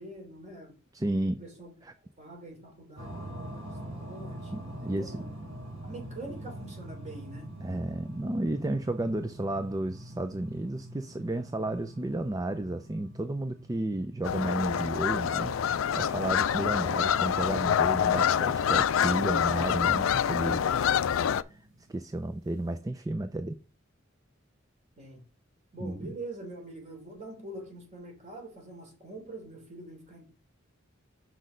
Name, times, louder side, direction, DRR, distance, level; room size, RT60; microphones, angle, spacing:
voice 1, 0.0-0.7 1.4-1.7 2.2-5.2 5.8-7.5 25.0-25.2 25.7-30.3, right 2 dB, 35° right, 3.3 m, -44 dB
voice 2, 0.9-1.4 1.8-1.9 4.5-5.2 7.6-15.5 15.9-20.6 21.5-21.6 21.9-23.6 25.8-26.2, right 1 dB, 15° right, 0.4 m, -32 dB
sound 1, 3.0-22.8, right 1 dB, 75° right, 2.3 m, -45 dB
sound 2, 14.2-21.4, left 8 dB, 85° left, 0.4 m, -26 dB
6.3 x 6.1 x 3.8 m
head